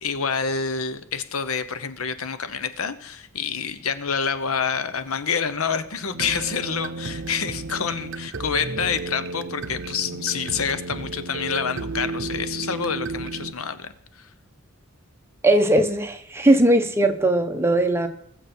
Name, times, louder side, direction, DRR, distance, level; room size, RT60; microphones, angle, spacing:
voice 1, 0.0-14.3, left 6 dB, 85° left, 12 dB, 0.9 m, -27 dB
sound 1, 6.1-13.5, right 3 dB, 60° right, 0.7 m, -33 dB
voice 2, 15.4-18.1, right 1 dB, 10° right, 6 dB, 1.0 m, -19 dB
20.5 x 7.2 x 4.4 m, 0.74 s
head